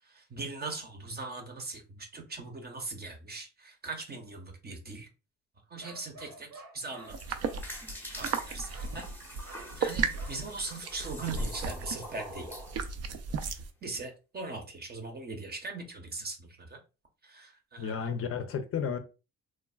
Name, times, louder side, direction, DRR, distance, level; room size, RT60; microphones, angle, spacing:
voice 1, 0.0-5.1 5.7-7.4 8.1-9.1 9.5-12.5 13.8-16.8 17.2-18.1, right 3 dB, 30° right, 0.8 m, -40 dB
Bark, 5.8-7.2 8.2-8.5 8.7-9.0 9.4-9.7 10.2-10.4, right 2 dB, 85° right, 1.4 m, -50 dB
sound 1, 6.9-13.5, left 1 dB, 5° left, 0.7 m, -46 dB
sound 2, 7.1-13.7, right 5 dB, 55° right, 0.5 m, -35 dB
voice 2, 17.8-19.0, left 6 dB, 50° left, 0.5 m, -32 dB
3.2 x 2.2 x 2.3 m
cardioid pair, 90°, 30 cm